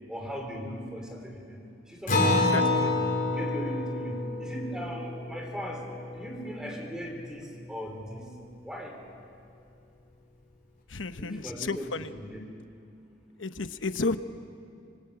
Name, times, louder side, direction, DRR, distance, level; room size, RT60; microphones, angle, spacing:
voice 1, 0.1-1.6 1.9-3.0 3.3-5.8 6.1-8.3 8.6-9.0 11.2-12.4, equal, 5° right, 1 dB, 4.1 m, -38 dB
Acoustic guitar, 2.1-7.0, left 2 dB, 45° left, 5.2 m, -28 dB
voice 2, 2.3-2.9 10.9-12.1 13.4-14.2, left 3 dB, 85° left, 10 dB, 1.1 m, -32 dB
25.0 x 25.0 x 8.9 m, 2.5 s
head